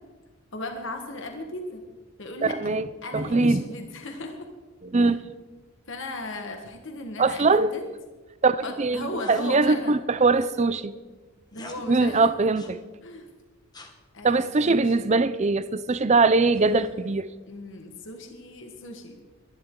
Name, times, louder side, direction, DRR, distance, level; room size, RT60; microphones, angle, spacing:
voice 1, 0.5-1.8 2.2-2.7 3.0-4.5 5.0-5.2 5.9-7.8 8.6-10.0 11.5-12.3 13.0-13.3 14.1-15.0 17.5-19.1, left 2 dB, 55° left, 1.5 m, -37 dB
voice 2, 2.4-2.9 3.1-3.6 4.9-5.2 7.2-7.7 8.4-10.9 11.9-12.8 14.2-17.3, right 3 dB, 30° right, 0.5 m, -22 dB
sound 1, 9.2-9.6 11.5-11.8 12.5-12.8 13.7-14.0 16.5-17.1, left 2 dB, 20° left, 1.2 m, -46 dB
22.5 x 11.0 x 3.8 m
head